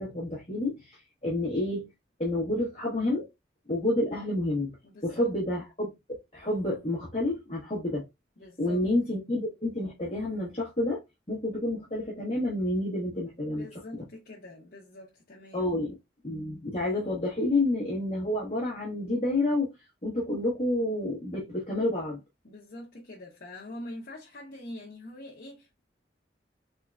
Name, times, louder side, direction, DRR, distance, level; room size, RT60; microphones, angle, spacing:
voice 1, 0.0-1.8 2.2-3.3 3.7-4.7 5.0-5.9 6.3-8.0 8.6-11.0 11.3-13.7 13.9-14.0 15.5-15.9 16.2-19.7 20.0-22.2, left 1 dB, 30° left, 1.2 m, -29 dB
voice 2, 4.8-5.3 8.4-8.8 13.4-15.7 22.4-25.8, left 1 dB, 50° left, 0.9 m, -44 dB
3.6 x 3.6 x 2.3 m
head